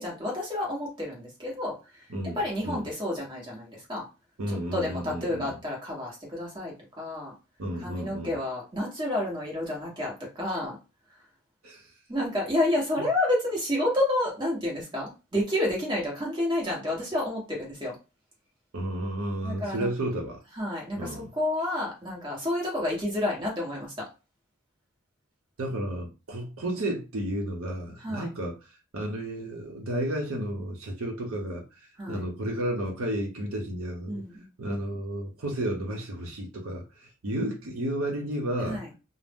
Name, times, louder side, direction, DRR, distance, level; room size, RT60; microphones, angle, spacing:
voice 1, 0.0-1.7 2.4-4.0 4.5-7.3 7.8-10.7 12.1-17.9 19.4-19.9 20.6-23.9 28.0-28.3 32.0-32.2 34.1-34.5 38.7-38.9, left 1 dB, 20° right, 1.2 m, -30 dB
voice 2, 2.1-2.8 4.4-5.5 7.6-8.4 11.6-11.9 18.7-20.4 21.0-21.3 25.6-34.2 34.6-38.8, right 1 dB, 75° right, 0.7 m, -32 dB
2.6 x 2.0 x 3.5 m
head